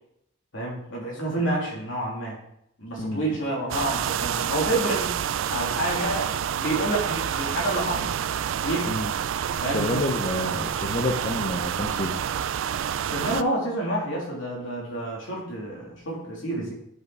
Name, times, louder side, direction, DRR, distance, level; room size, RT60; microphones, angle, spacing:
voice 1, 0.5-2.4 2.8-5.2 5.5-8.1 8.6-8.9 9.6-10.0 13.1-16.7, right 1 dB, 80° left, -3 dB, 2.9 m, -28 dB
sound 1, 3.7-13.4, right 9 dB, 85° right, 0.3 m, -28 dB
voice 2, 9.7-12.3, left 1 dB, 40° left, 1 dB, 0.8 m, -29 dB
9.2 x 5.2 x 4.8 m, 0.76 s
head